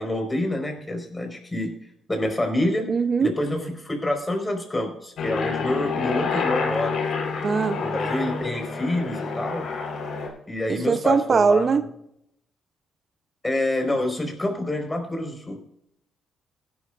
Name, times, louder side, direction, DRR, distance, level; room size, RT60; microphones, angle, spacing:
voice 1, 0.0-1.7 2.1-2.9 3.2-7.0 7.8-9.6 10.5-11.8 13.4-15.6, left 1 dB, 15° left, 3 dB, 4.8 m, -27 dB
voice 2, 2.9-3.3 7.4-7.8 10.7-11.8, right 5 dB, 45° right, 9 dB, 0.7 m, -21 dB
Aircraft, 5.2-10.3, left 4 dB, 70° left, 4.8 m, -28 dB
16.0 x 11.5 x 2.5 m, 0.74 s
cardioid pair, 90°, 0 cm